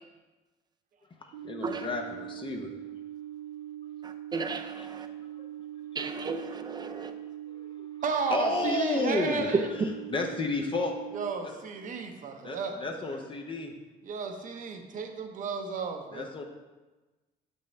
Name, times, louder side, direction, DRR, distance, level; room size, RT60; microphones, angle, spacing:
sound 1, 1.3-11.3, right 12 dB, 75° right, 0.6 m, -42 dB
voice 1, 1.4-2.7 4.7-5.0 5.4-5.5 6.7-7.0 7.5-7.7 8.3-10.9 11.4-11.5 12.4-13.7 16.1-16.4, left 3 dB, 30° left, 3 dB, 0.6 m, -32 dB
voice 2, 4.3-5.1 6.0-7.1, right 4 dB, 25° right, 7 dB, 0.5 m, -35 dB
voice 3, 8.0-9.7 11.1-13.2 14.0-16.3, right 5 dB, 50° right, 5 dB, 0.9 m, -33 dB
6.8 x 5.4 x 3.3 m, 1.2 s
cardioid pair, 110°, 17 cm